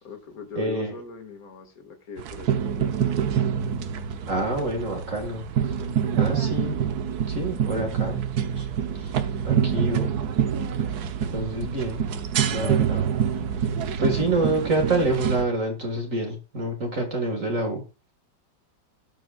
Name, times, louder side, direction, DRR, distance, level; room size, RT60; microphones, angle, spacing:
voice 1, 0.0-3.0, left 6 dB, 45° left, 2.4 m, -40 dB
voice 2, 0.6-0.9 4.3-5.8 6.2-6.8 7.3-8.2 8.6-8.7 9.0-9.1 9.4-10.1 11.3-12.0 12.5-13.1 14.0-17.8, right 2 dB, 40° right, 2.2 m, -27 dB
sound 1, 2.2-15.4, right 8 dB, 60° right, 1.3 m, -26 dB
18.0 x 7.0 x 2.4 m
omnidirectional pair, 2.1 m